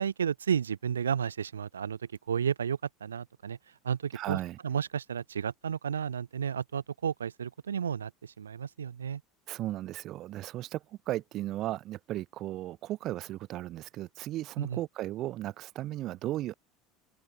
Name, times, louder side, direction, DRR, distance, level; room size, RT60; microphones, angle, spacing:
voice 1, 0.0-2.0 2.3-3.6 3.8-9.2 14.6-14.8, right 7 dB, 75° right, 3.0 m, -32 dB
voice 2, 4.1-4.6 9.5-16.5, right 15 dB, 45° right, 3.6 m, -35 dB
open air
figure-of-eight pair, 70°, 0 cm